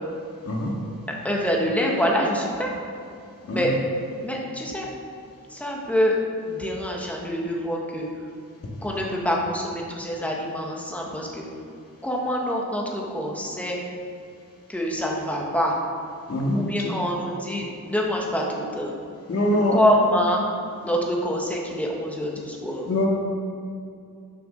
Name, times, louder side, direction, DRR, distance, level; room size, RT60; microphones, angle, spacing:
voice 1, 1.1-2.7 3.5-3.7 4.2-4.9 5.5-6.2 6.5-8.1 8.8-11.5 12.0-13.8 14.7-15.7 16.5-18.9 19.7-22.9, equal, 5° left, -2 dB, 1.4 m, -25 dB
voice 2, 19.3-19.8 22.9-23.1, left 1 dB, 45° left, -2 dB, 2.1 m, -23 dB
10.0 x 7.0 x 6.5 m, 2.4 s
wide cardioid pair, 170°, 33 cm